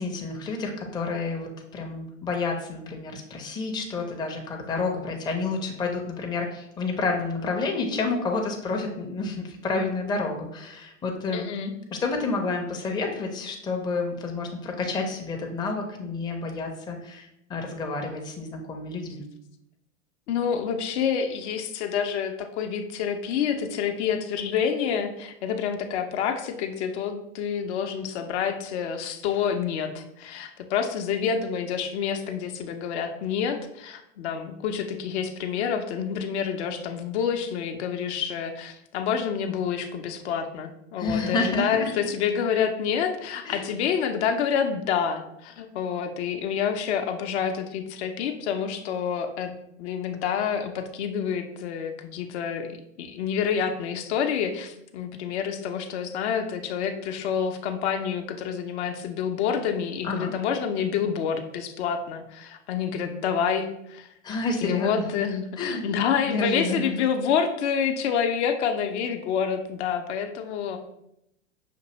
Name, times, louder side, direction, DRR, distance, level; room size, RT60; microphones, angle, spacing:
voice 1, 0.0-11.5 11.9-19.3 41.0-42.1 43.4-43.6 60.0-60.3 64.2-65.2 65.6-65.8 66.3-66.9, left 3 dB, 10° left, 1 dB, 0.5 m, -29 dB
voice 2, 11.3-11.7 20.3-49.5 49.8-64.1 64.6-70.8, left 7 dB, 55° left, 6 dB, 0.6 m, -28 dB
5.9 x 2.6 x 3.0 m, 0.80 s
hypercardioid pair, 95°, 39 cm